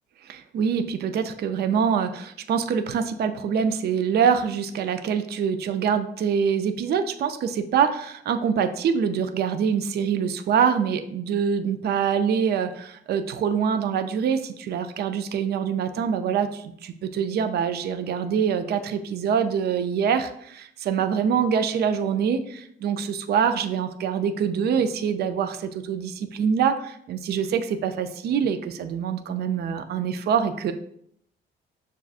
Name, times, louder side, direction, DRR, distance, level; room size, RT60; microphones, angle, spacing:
voice 1, 0.2-30.7, right 7 dB, 55° right, 9 dB, 0.4 m, -25 dB
6.6 x 2.4 x 2.4 m, 0.69 s
cardioid pair, 90°, 20 cm